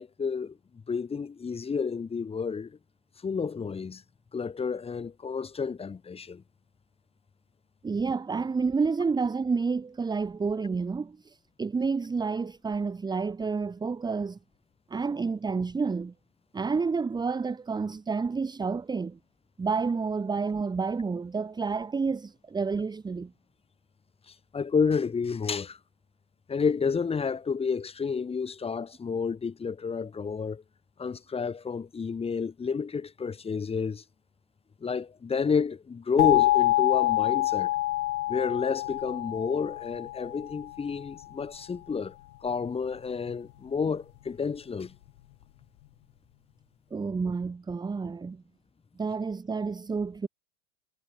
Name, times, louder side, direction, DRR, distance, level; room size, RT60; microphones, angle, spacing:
voice 1, 0.0-2.8 3.2-4.0 4.3-6.4 24.3-25.8 26.5-30.6 31.0-34.0 34.8-37.7 38.3-42.1 42.4-44.9, left 5 dB, 10° left, 6.8 m, -30 dB
voice 2, 7.8-14.4 14.9-16.1 16.5-19.2 19.6-23.3 46.9-48.4 49.0-50.3, right 4 dB, 10° right, 2.4 m, -29 dB
sound 1, 36.2-40.9, left 16 dB, 70° left, 5.1 m, -26 dB
supercardioid pair, 160°, 46 cm